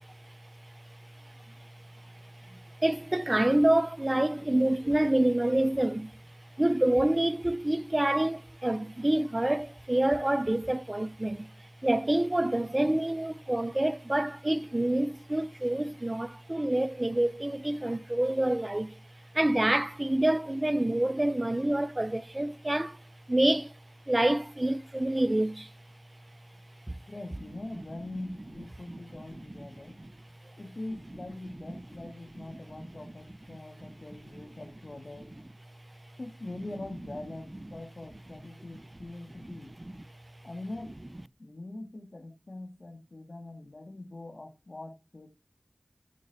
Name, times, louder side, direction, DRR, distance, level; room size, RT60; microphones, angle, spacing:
voice 1, 2.8-6.1 6.6-11.5 11.8-18.9 19.3-23.0 23.3-23.7 24.1-25.7 26.9-27.0 28.9-29.0 30.0-30.1, right 1 dB, 35° right, 0.7 m, -27 dB
voice 2, 27.1-30.0 30.6-35.3 36.2-39.7 40.4-40.9 41.4-45.3, left 2 dB, 70° left, 1.9 m, -43 dB
13.5 x 5.4 x 4.1 m
wide cardioid pair, 55°, 0 cm